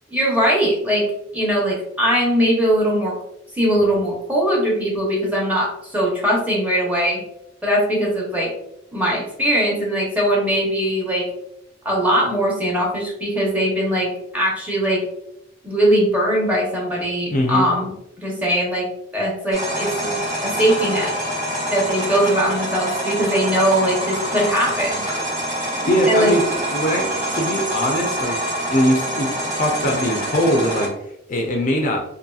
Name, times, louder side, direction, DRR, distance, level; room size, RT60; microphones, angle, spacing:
voice 1, 0.1-1.1 1.3-3.1 3.5-7.2 7.6-8.5 8.9-11.2 11.8-15.0 15.6-17.9 18.2-18.9 19.1-21.1 21.7-25.0 26.1-26.3, equal, 10° right, -3 dB, 0.8 m, -20 dB
voice 2, 17.3-17.7 25.5-26.4 26.7-27.1 27.3-28.4 28.7-30.9 31.3-32.0, equal, 45° left, 1 dB, 0.4 m, -21 dB
sound 1, 19.5-30.9, right 1 dB, 35° right, 1.1 m, -25 dB
2.7 x 2.6 x 2.3 m, 0.79 s
head